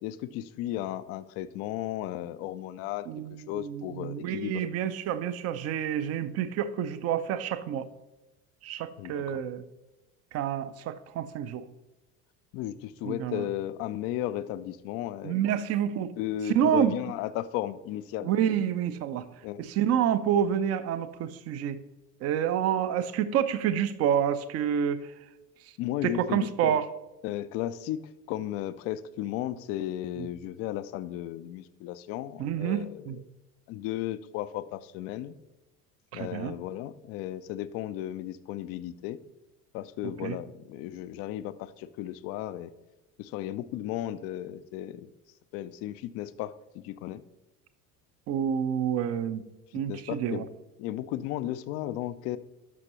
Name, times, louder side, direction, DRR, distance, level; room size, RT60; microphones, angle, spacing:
voice 1, 0.0-3.1 3.5-4.8 9.0-9.4 12.5-15.3 16.2-18.3 19.4-19.7 25.8-26.8 27.2-28.0 28.3-33.2 33.7-35.3 36.1-39.2 39.7-42.7 43.2-45.1 45.5-47.2 49.9-50.4 50.8-52.4, left 13 dB, 35° left, 15 dB, 0.4 m, -35 dB
voice 2, 3.1-7.9 8.6-9.6 10.3-11.6 13.0-13.5 15.2-16.1 16.6-17.0 18.2-19.3 19.6-21.8 22.2-25.1 26.0-26.9 30.2-30.3 32.4-33.2 36.1-36.5 40.2-40.4 48.3-49.4 49.7-50.4, right 9 dB, 35° right, 14 dB, 0.6 m, -28 dB
12.0 x 5.9 x 2.9 m, 1.0 s
figure-of-eight pair, 65°, 48 cm